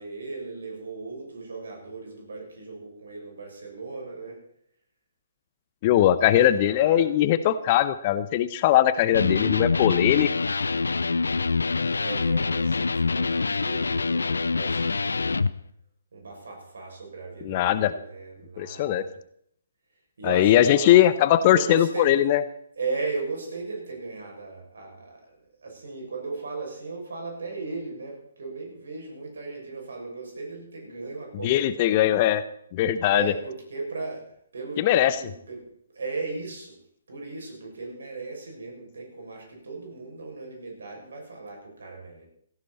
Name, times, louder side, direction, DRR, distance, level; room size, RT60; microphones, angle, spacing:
voice 1, 0.0-4.4 6.3-7.1 12.0-15.4 16.1-19.1 20.2-21.0 21.4-22.1 22.7-32.1 33.1-34.2 34.5-35.6 35.9-36.8 37.1-42.3, right 3 dB, 60° right, 0 dB, 6.8 m, -37 dB
voice 2, 5.8-10.3 17.4-17.9 18.6-19.0 20.3-22.4 31.4-32.4 32.7-33.3 34.8-35.2, left 12 dB, 30° left, 14 dB, 0.8 m, -20 dB
Electric guitar, 9.1-15.5, left 4 dB, 70° left, 0.6 m, -25 dB
17.0 x 15.0 x 4.3 m, 0.68 s
figure-of-eight pair, 130°, 0 cm